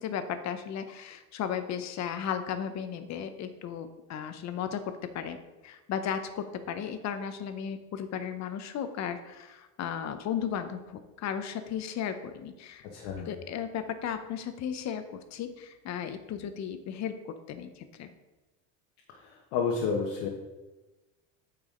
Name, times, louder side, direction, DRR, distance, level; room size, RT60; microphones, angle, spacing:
voice 1, 0.0-5.4 5.6-12.9 13.2-18.1, left 8 dB, 45° left, 9 dB, 0.8 m, -35 dB
voice 2, 12.8-13.3 19.5-20.3, left 5 dB, 75° left, 0 dB, 1.3 m, -29 dB
9.0 x 4.8 x 3.8 m, 1.1 s
cardioid pair, 120°, 38 cm